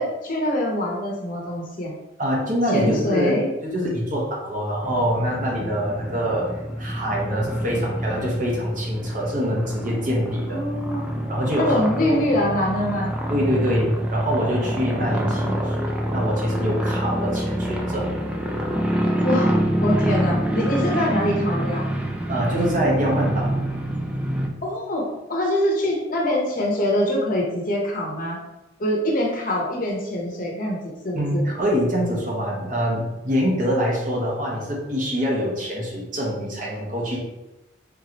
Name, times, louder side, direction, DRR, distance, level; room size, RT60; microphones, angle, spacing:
voice 1, 0.0-1.9 2.7-3.5 10.5-11.2 11.6-13.1 14.9-15.6 19.2-19.5 19.8-21.9 24.6-28.4 28.8-31.4, equal, 45° left, -2 dB, 0.8 m, -24 dB
voice 2, 2.2-6.4 6.8-10.6 11.3-12.2 13.3-18.1 22.3-23.5 31.1-37.2, equal, 40° right, -3 dB, 1.0 m, -25 dB
sound 1, 4.8-24.5, equal, 5° right, 0.3 m, -26 dB
3.7 x 2.9 x 2.9 m, 0.98 s
head